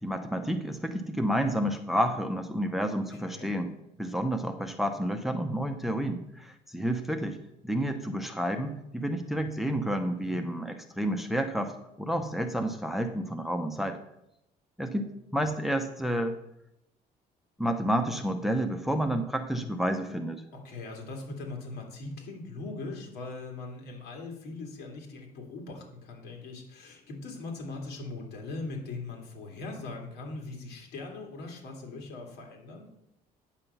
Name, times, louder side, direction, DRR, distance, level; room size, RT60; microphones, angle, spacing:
voice 1, 0.0-3.7 4.0-7.4 7.6-14.0 14.8-16.4 17.6-20.4, equal, ahead, 5 dB, 0.8 m, -30 dB
voice 2, 3.2-3.5 10.2-10.5 20.5-32.9, left 3 dB, 80° left, 1 dB, 2.5 m, -40 dB
9.0 x 6.0 x 5.7 m, 0.82 s
cardioid pair, 110°, 17 cm